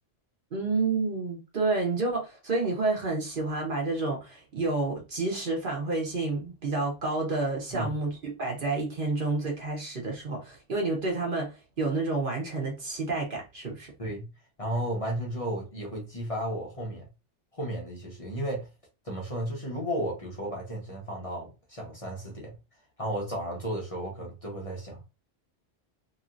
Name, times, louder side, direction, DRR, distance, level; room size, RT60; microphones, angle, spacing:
voice 1, 0.5-13.9, right 3 dB, 50° right, 1.1 m, -29 dB
voice 2, 14.6-17.1 17.5-18.7 19.0-22.5 23.0-25.0, right 1 dB, 30° left, 0.9 m, -33 dB
3.1 x 2.7 x 2.5 m
omnidirectional pair, 1.2 m